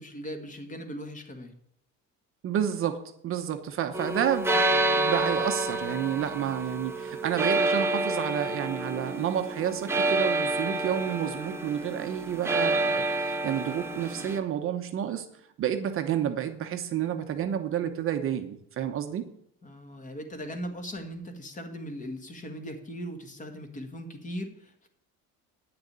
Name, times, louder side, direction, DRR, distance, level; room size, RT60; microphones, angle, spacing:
voice 1, 0.0-1.5 19.6-24.9, equal, 25° left, 6 dB, 1.7 m, -39 dB
voice 2, 2.4-15.3 15.6-19.3, right 9 dB, 40° right, 7 dB, 0.9 m, -30 dB
sound 1, 3.9-14.4, right 2 dB, 10° right, 0.9 m, -28 dB
9.7 x 6.5 x 8.7 m, 0.73 s
cardioid pair, 160°, 32 cm